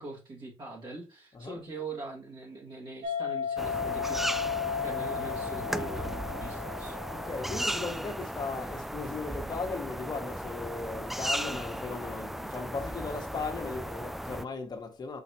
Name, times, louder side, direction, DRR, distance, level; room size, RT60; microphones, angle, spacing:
voice 1, 0.0-4.2 4.7-7.0, right 3 dB, 50° right, 1.9 m, -42 dB
sound 1, 3.0-7.8, left 7 dB, 90° right, 0.8 m, -34 dB
sound 2, 3.6-14.4, equal, ahead, 0.3 m, -36 dB
voice 2, 7.1-15.2, left 4 dB, 45° left, 1.4 m, -37 dB
5.7 x 3.1 x 2.8 m
supercardioid pair, 65°, 10 cm